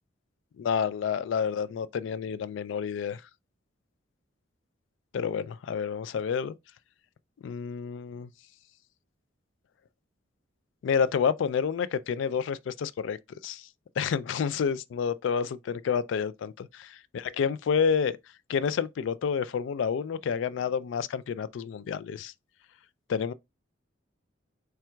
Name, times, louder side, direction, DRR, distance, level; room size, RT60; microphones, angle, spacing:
voice 1, 0.6-3.2 5.1-6.6 7.4-8.3 10.8-13.2 13.4-13.6 14.0-18.2 18.5-22.3 23.1-23.3, left 6 dB, 70° left, 0.3 m, -29 dB
4.4 x 3.5 x 2.3 m
head